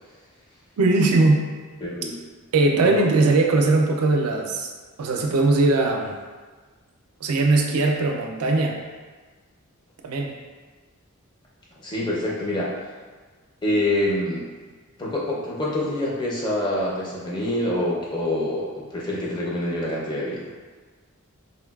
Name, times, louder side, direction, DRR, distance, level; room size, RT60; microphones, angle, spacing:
voice 1, 0.8-1.4 2.5-4.7 5.0-6.1 7.2-8.8 10.0-10.4, right 3 dB, 80° right, 2 dB, 0.4 m, -20 dB
voice 2, 1.8-2.2 2.7-3.1 11.8-12.7 13.6-14.5 15.0-20.5, left 1 dB, 20° left, -5 dB, 0.5 m, -26 dB
3.9 x 2.2 x 2.3 m, 1.4 s
head